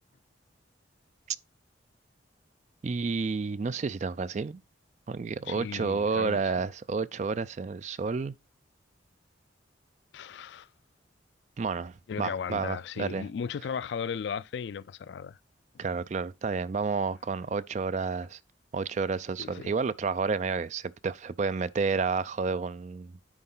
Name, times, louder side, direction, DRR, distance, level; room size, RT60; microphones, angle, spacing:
voice 1, 2.8-4.6 5.1-8.3 11.6-13.3 15.8-18.4 18.7-23.1, right 4 dB, 40° right, 0.3 m, -30 dB
voice 2, 5.5-6.4 10.1-10.7 12.1-15.4 15.7-15.8 19.4-19.7, left 6 dB, 65° left, 0.3 m, -36 dB
9.8 x 4.6 x 3.8 m
head